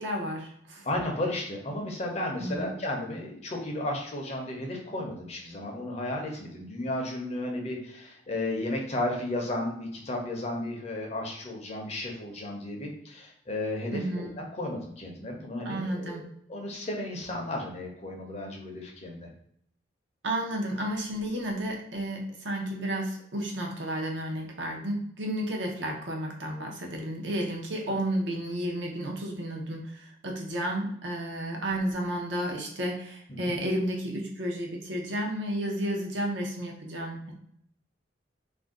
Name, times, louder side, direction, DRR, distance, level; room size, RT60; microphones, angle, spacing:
voice 1, 0.0-0.9 2.4-2.7 13.9-14.4 15.6-16.3 20.2-37.3, right 1 dB, 65° right, 0 dB, 0.6 m, -32 dB
voice 2, 0.8-16.2 16.5-19.3 33.3-33.5, left 1 dB, 35° left, 0 dB, 0.5 m, -34 dB
2.5 x 2.1 x 3.6 m, 0.70 s
head